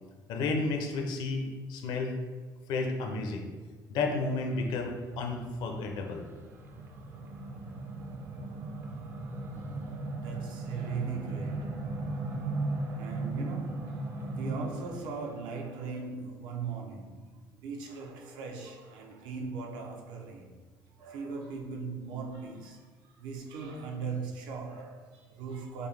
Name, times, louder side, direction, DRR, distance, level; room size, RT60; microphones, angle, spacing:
voice 1, 0.3-2.2 2.7-3.5 3.9-6.2, left 3 dB, 65° left, 0.6 m, -32 dB
sound 1, 4.6-15.0, right 2 dB, 30° right, 0.4 m, -37 dB
voice 2, 9.6-11.9 12.7-20.6 20.9-25.9, right 5 dB, 80° right, 0.6 m, -39 dB
5.2 x 2.1 x 3.2 m
cardioid pair, 160°, 8 cm